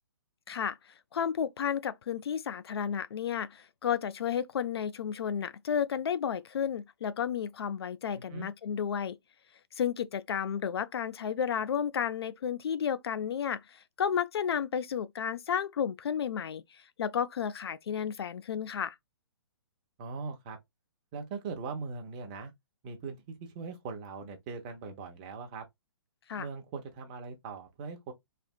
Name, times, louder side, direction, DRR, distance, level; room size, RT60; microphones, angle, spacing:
voice 1, 0.5-0.8 1.1-9.2 9.8-16.6 17.0-19.0 26.3-26.5, left 8 dB, 65° left, 0.4 m, -32 dB
voice 2, 8.1-8.5 20.0-20.6 21.1-22.5 22.8-25.7 26.4-28.1, right 4 dB, 20° right, 0.5 m, -40 dB
3.2 x 2.9 x 2.3 m
hypercardioid pair, 170°, 14 cm